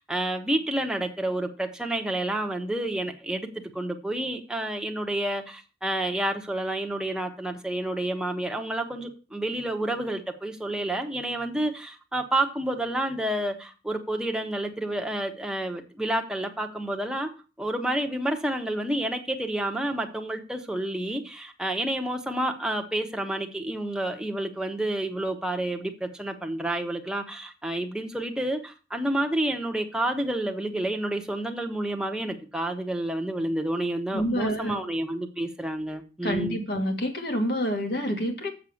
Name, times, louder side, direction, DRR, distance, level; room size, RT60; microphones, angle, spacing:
voice 1, 0.0-3.5 3.7-17.3 17.6-36.6, right 1 dB, 5° right, 1.1 m, -29 dB
voice 2, 34.1-34.8 36.2-38.5, equal, 60° left, 2.2 m, -28 dB
7.3 x 6.8 x 7.1 m
head